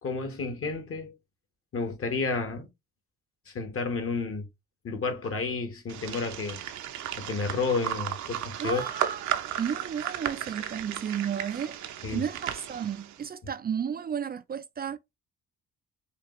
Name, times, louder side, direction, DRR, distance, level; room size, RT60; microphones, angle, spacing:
voice 1, 0.0-1.1 1.7-2.7 3.5-4.5 4.8-6.6 7.2-8.8 12.0-12.2, left 4 dB, 45° left, 1.2 m, -31 dB
sound 1, 5.9-13.2, right 10 dB, 70° right, 0.7 m, -35 dB
voice 2, 8.6-11.8 12.1-15.0, right 8 dB, 30° right, 0.4 m, -33 dB
5.0 x 2.4 x 3.0 m
cardioid pair, 90°, 30 cm